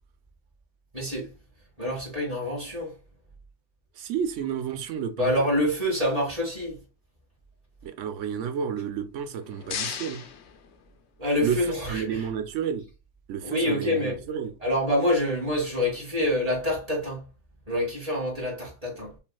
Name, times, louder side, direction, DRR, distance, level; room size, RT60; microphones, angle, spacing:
voice 1, 0.9-1.3 1.8-2.9 5.2-6.8 11.2-12.2 13.4-14.2 14.6-17.2 17.7-19.1, left 1 dB, 30° right, 2.0 m, -26 dB
voice 2, 4.0-5.3 7.8-10.3 11.4-12.9 13.3-14.5, right 8 dB, 80° right, 1.0 m, -31 dB
sound 1, 9.1-11.4, left 7 dB, 70° left, 0.9 m, -37 dB
5.6 x 2.4 x 2.3 m
omnidirectional pair, 1.2 m